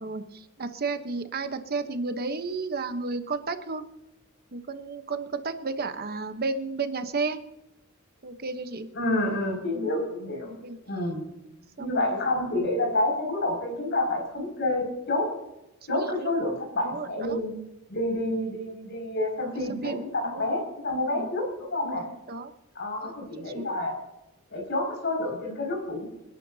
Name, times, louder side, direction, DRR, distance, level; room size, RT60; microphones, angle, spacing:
voice 1, 0.0-3.8 4.5-7.4 8.2-8.9 9.7-9.9 10.6-10.8 11.8-12.0 15.9-16.3 16.8-17.4 19.8-20.0 20.3-20.5 21.1-21.3 21.8-22.5 23.0-23.1 23.5-23.7, right 4 dB, 45° right, 9 dB, 1.0 m, -32 dB
voice 2, 8.9-10.5 10.8-11.2 11.8-15.3 15.9-17.5 17.9-22.0 22.7-23.9 24.5-26.0, left 1 dB, 55° left, 1 dB, 5.9 m, -28 dB
27.5 x 10.5 x 2.8 m, 0.91 s
head